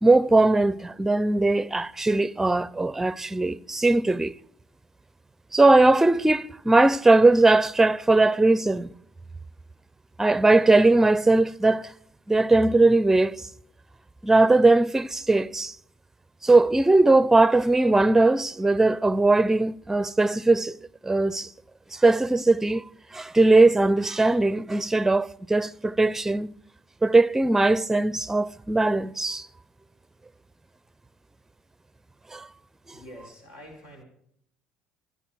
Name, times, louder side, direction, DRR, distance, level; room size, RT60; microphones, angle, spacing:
voice 1, 0.0-4.3 5.5-8.9 10.2-11.9 12.3-13.4 14.2-15.7 16.4-20.7 21.0-21.5 21.9-22.8 23.1-26.5 27.0-29.5 32.3-32.5, right 2 dB, 10° right, 0.6 m, -20 dB
voice 2, 32.9-34.1, equal, 70° left, 5.3 m, -46 dB
27.0 x 10.0 x 4.6 m
figure-of-eight pair, 55°, 3 cm